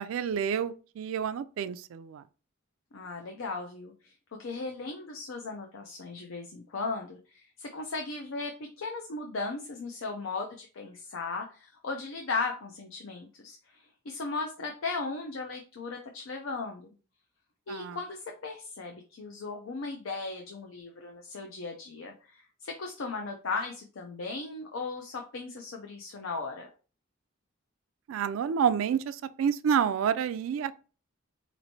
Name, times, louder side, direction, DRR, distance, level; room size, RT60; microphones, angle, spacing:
voice 1, 0.0-2.2 17.7-18.0 28.1-30.8, right 7 dB, 85° right, 0.3 m, -29 dB
voice 2, 2.9-4.1 4.4-16.9 17.7-26.7, left 3 dB, 85° left, 0.5 m, -37 dB
4.3 x 3.0 x 2.7 m
head